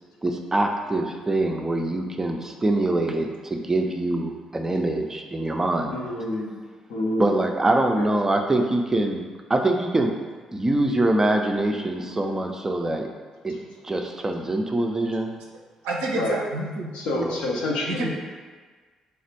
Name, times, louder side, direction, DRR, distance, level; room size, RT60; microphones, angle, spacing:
voice 1, 0.2-6.0 7.2-9.2 9.5-10.1 10.5-13.1 13.4-13.6 13.8-15.4 17.1-17.4, right 2 dB, 20° right, 3 dB, 0.5 m, -24 dB
voice 2, 5.9-6.6 6.9-7.4 7.9-8.0 16.1-16.4 16.9-18.1, left 1 dB, 65° left, -3 dB, 0.7 m, -27 dB
voice 3, 15.8-16.9 17.9-18.2, right 2 dB, 70° right, -1 dB, 0.5 m, -29 dB
3.4 x 2.4 x 4.4 m, 1.5 s
figure-of-eight pair, 40°, 2 cm